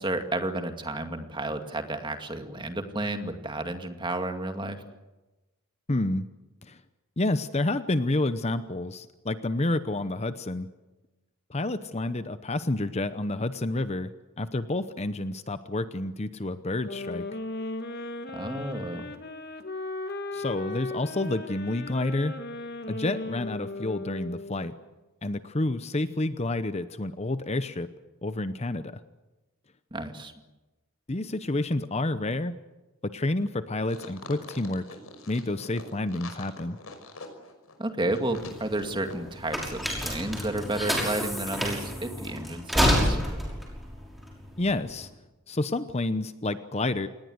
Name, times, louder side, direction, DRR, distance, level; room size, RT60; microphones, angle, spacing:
voice 1, 0.0-4.8 18.3-19.1 29.9-30.3 37.8-43.2, right 2 dB, 20° right, 6 dB, 2.2 m, -31 dB
voice 2, 5.9-6.3 6.6-6.8 7.2-10.7 11.5-17.2 20.3-22.3 22.9-24.7 25.2-27.9 28.2-28.9 31.1-32.6 33.0-34.9 35.3-36.8 44.6-45.1 45.5-47.1, left 2 dB, 30° left, 12 dB, 0.8 m, -29 dB
sound 1, 16.8-24.8, left 2 dB, 45° left, 2.1 m, -37 dB
sound 2, 33.8-39.7 40.0-40.1, left 3 dB, 75° left, 5.7 m, -44 dB
sound 3, 38.2-45.0, equal, ahead, 5.9 m, -28 dB
28.0 x 19.5 x 8.0 m, 1.1 s
head